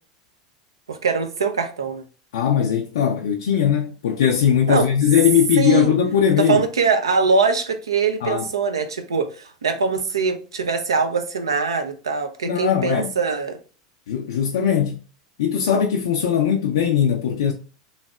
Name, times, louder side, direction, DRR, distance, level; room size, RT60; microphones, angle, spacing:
voice 1, 0.9-2.0 4.7-4.9 5.6-6.0 6.4-13.6, right 5 dB, 90° right, 0.5 m, -22 dB
voice 2, 2.3-6.6 8.2-8.4 12.4-13.1 14.1-15.0 15.4-17.5, left 8 dB, 75° left, 0.4 m, -19 dB
3.1 x 2.6 x 2.3 m
hypercardioid pair, 95°, 2 cm